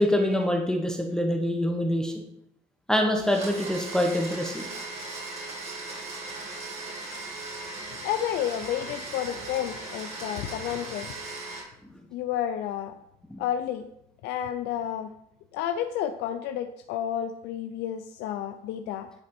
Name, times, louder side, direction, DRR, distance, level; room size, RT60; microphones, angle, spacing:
voice 1, 0.0-2.1 2.9-4.6 13.3-13.4, left 1 dB, 5° left, 2 dB, 0.9 m, -25 dB
Domestic sounds home sounds, 3.2-11.6, right 2 dB, 40° right, 2.8 m, -38 dB
voice 2, 8.0-11.1 12.1-12.9 13.4-13.9 14.2-15.1 15.5-19.2, left 10 dB, 85° left, 7 dB, 0.5 m, -31 dB
9.8 x 4.2 x 4.3 m, 0.77 s
cardioid pair, 110°, 17 cm